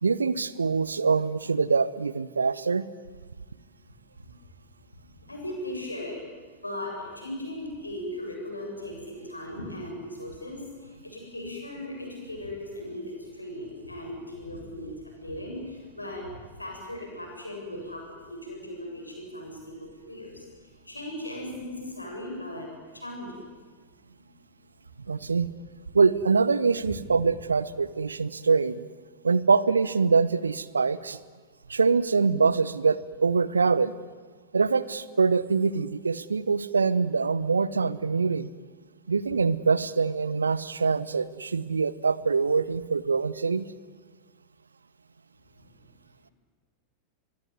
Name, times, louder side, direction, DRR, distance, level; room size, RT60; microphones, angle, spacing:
voice 1, 0.0-2.9 25.1-25.5 25.9-28.8 29.2-31.2 31.7-33.9 34.5-38.5 39.1-43.7, right 4 dB, 75° right, 19 dB, 0.9 m, -24 dB
voice 2, 4.9-6.2 6.6-22.7 22.9-23.4 24.1-24.2 25.0-25.1 26.8-26.9 45.6-45.7, left 1 dB, 85° left, 1 dB, 7.6 m, -38 dB
24.0 x 22.5 x 9.5 m, 1.5 s
figure-of-eight pair, 90°, 0 cm